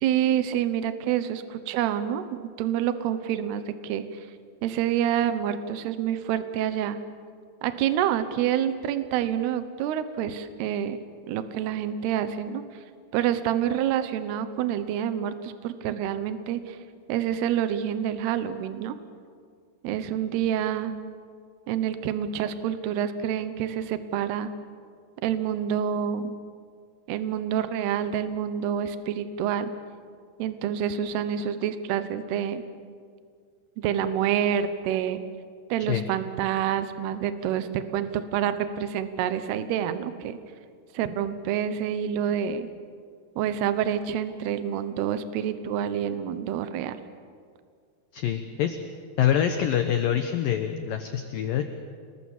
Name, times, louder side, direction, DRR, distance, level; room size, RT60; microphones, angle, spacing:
voice 1, 0.0-4.3 4.6-7.0 7.6-11.0 11.3-12.6 13.1-16.8 17.1-19.0 19.8-20.9 21.7-24.5 25.2-26.3 27.1-29.7 30.4-32.6 33.8-35.2 35.7-40.4 40.9-42.7 43.4-47.0, right 9 dB, 70° right, 11 dB, 2.9 m, -27 dB
voice 2, 48.1-48.8 49.2-51.6, left 10 dB, 70° left, 6 dB, 2.2 m, -25 dB
28.5 x 20.5 x 7.3 m, 2.1 s
omnidirectional pair, 5.3 m